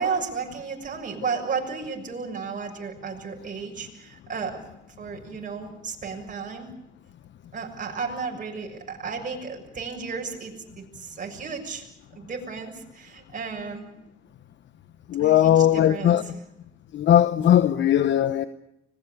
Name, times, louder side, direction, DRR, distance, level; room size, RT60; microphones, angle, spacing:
voice 1, 0.0-4.6 5.0-6.7 7.5-11.9 12.1-13.9 15.2-16.3, right 5 dB, 40° right, 6.6 m, -33 dB
voice 2, 15.1-16.2 16.9-18.5, left 11 dB, 65° left, 1.1 m, -19 dB
25.5 x 20.0 x 8.5 m
cardioid pair, 90°, 20 cm